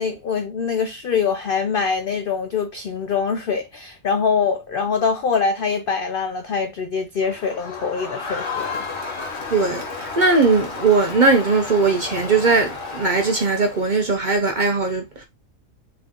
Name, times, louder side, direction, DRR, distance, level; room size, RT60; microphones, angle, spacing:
voice 1, 0.0-8.9, left 5 dB, 80° left, 0.5 m, -24 dB
Crowd, 7.2-14.0, left 4 dB, 50° left, 1.5 m, -32 dB
voice 2, 9.5-15.2, right 4 dB, 45° right, 0.6 m, -19 dB
3.9 x 3.3 x 3.6 m
omnidirectional pair, 1.5 m